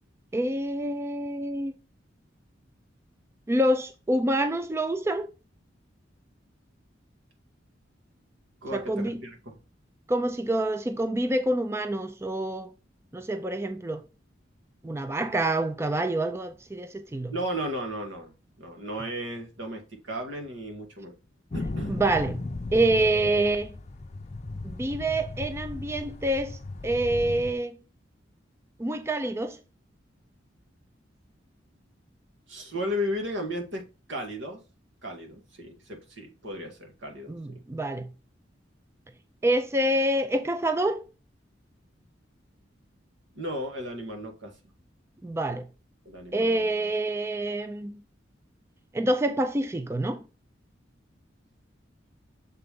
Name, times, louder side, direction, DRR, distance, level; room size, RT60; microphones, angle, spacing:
voice 1, 0.3-1.8 3.5-5.3 8.7-9.2 10.1-12.7 13.1-14.0 14.8-17.3 21.9-22.4 22.7-23.7 24.6-27.8 28.8-29.6 37.3-38.1 39.4-41.0 45.2-45.7 46.3-48.0 48.9-50.2, right 1 dB, 15° right, 0.4 m, -27 dB
voice 2, 8.6-9.6 17.3-21.1 21.5-22.0 32.5-34.6 35.0-37.6 43.3-44.5 46.0-46.7, equal, 80° right, 1.8 m, -35 dB
sound 1, 21.5-27.5, left 2 dB, 35° left, 0.5 m, -36 dB
6.8 x 4.0 x 3.5 m
head